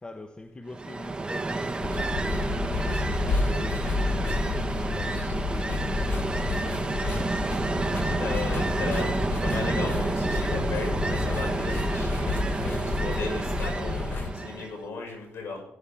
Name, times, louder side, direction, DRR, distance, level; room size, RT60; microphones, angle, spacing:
voice 1, 0.0-7.6 12.3-13.4, left 2 dB, 20° left, 1.2 m, -43 dB
Ocean, 0.7-14.8, right 3 dB, 20° right, 1.2 m, -30 dB
sound 1, 1.8-14.3, left 3 dB, 50° left, 1.2 m, -30 dB
voice 2, 8.0-12.6 13.0-15.6, left 4 dB, 75° left, 6.0 m, -36 dB
16.0 x 11.0 x 3.6 m
cardioid pair, 105°, 4 cm